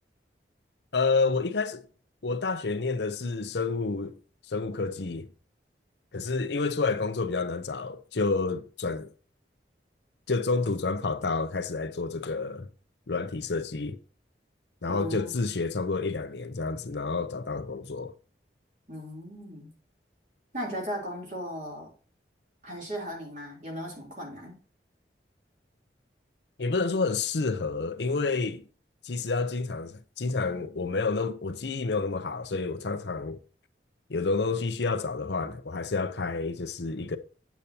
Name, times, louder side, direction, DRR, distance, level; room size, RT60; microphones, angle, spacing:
voice 1, 0.9-1.9 2.2-4.2 4.5-5.3 6.1-9.1 10.3-12.7 13.1-14.0 14.8-18.1 26.6-28.6 29.0-33.4 34.1-37.2, left 4 dB, 75° left, 0.7 m, -29 dB
voice 2, 14.9-15.3 18.9-19.7 20.5-21.9 22.6-24.5, equal, 45° right, 3.3 m, -37 dB
8.5 x 8.1 x 2.8 m
head